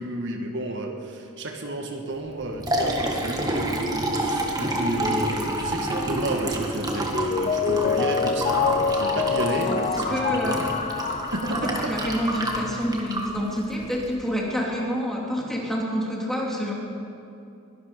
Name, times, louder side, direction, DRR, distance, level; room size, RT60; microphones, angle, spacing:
voice 1, 0.0-10.6 11.3-11.9, right 1 dB, 60° right, 3 dB, 1.6 m, -31 dB
Liquid, 2.3-14.2, right 1 dB, 20° right, 1.7 m, -29 dB
Mallet percussion, 7.1-12.7 13.0-13.1, left 5 dB, 30° left, 0.6 m, -26 dB
voice 2, 9.5-9.8 10.1-10.6 11.5-16.7, equal, ahead, -3 dB, 3.0 m, -28 dB
22.0 x 12.0 x 5.2 m, 2.7 s
head